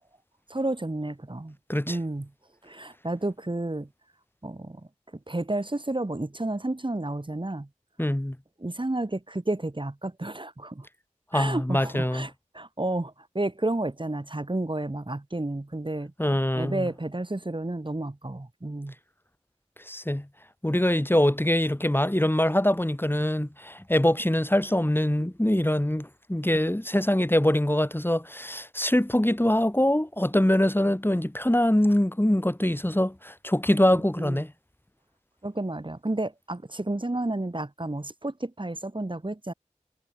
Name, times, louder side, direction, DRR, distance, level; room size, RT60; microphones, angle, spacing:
voice 1, 0.5-1.6 1.9-2.3 2.6-3.9 4.4-4.8 5.3-7.7 8.6-10.9 11.3-16.1 16.5-18.9 34.2-34.4 35.4-39.5, right 2 dB, 40° right, 3.9 m, -31 dB
voice 2, 8.0-8.4 11.3-12.3 16.2-16.9 19.9-20.3 20.6-34.5, left 1 dB, 15° left, 3.8 m, -24 dB
wide cardioid pair, 50°, 14 cm